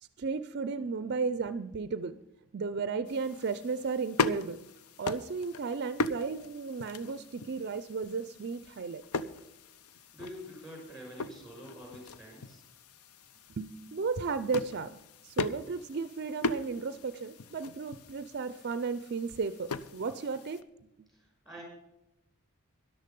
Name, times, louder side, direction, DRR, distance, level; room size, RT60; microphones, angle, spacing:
voice 1, 0.2-2.2 2.5-4.6 5.0-9.0 13.6-20.6 21.0-21.1, right 4 dB, 50° right, 13 dB, 0.4 m, -34 dB
sound 1, 3.1-20.6, left 3 dB, 80° left, 0.6 m, -39 dB
voice 2, 10.1-12.6 21.1-21.6, equal, ahead, -1 dB, 6.1 m, -47 dB
13.0 x 11.0 x 5.3 m, 0.89 s
head